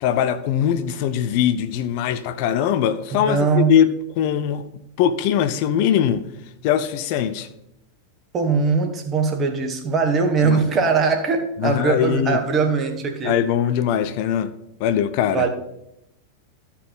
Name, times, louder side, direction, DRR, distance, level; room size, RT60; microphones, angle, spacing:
voice 1, 0.0-4.6 5.0-6.2 6.6-7.5 10.4-10.6 11.6-12.4 13.2-14.5 14.8-15.4, left 9 dB, 45° left, 12 dB, 0.6 m, -21 dB
voice 2, 3.2-3.7 8.3-13.4 15.3-15.5, right 5 dB, 25° right, 5 dB, 1.5 m, -21 dB
14.0 x 5.7 x 4.1 m, 0.82 s
figure-of-eight pair, 90°, 0 cm